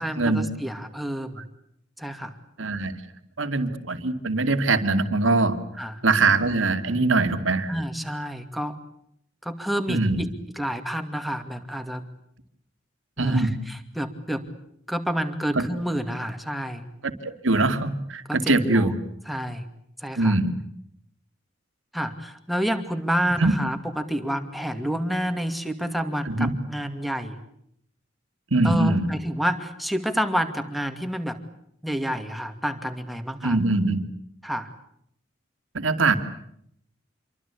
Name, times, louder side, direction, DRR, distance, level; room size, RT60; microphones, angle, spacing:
voice 1, 0.0-1.4 2.0-2.4 5.8-6.0 7.7-8.8 9.4-10.3 10.5-12.0 13.2-14.4 14.9-16.9 18.3-18.9 19.3-19.7 20.0-20.4 21.9-27.4 28.6-31.4 31.8-33.6 34.4-34.7, equal, ahead, 7 dB, 2.4 m, -29 dB
voice 2, 2.6-3.0 3.4-5.6 6.0-7.7 9.9-10.2 13.2-13.5 15.6-15.7 17.0-18.9 20.2-20.6 23.4-23.5 26.3-26.5 28.5-29.1 33.4-34.0 35.7-36.2, right 3 dB, 80° right, 8 dB, 2.5 m, -22 dB
27.5 x 23.5 x 8.4 m, 0.71 s
head